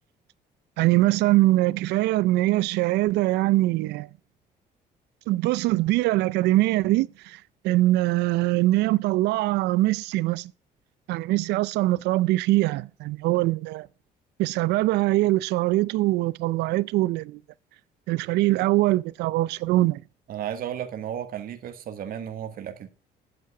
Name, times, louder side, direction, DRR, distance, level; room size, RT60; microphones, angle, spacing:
voice 1, 0.8-4.1 5.3-7.4 7.6-10.5 11.1-13.9 14.4-17.4 18.1-20.0, right 17 dB, 85° right, 0.5 m, -22 dB
voice 2, 20.3-22.9, right 9 dB, 60° right, 1.3 m, -34 dB
8.5 x 7.5 x 6.3 m
cardioid pair, 110°, 17 cm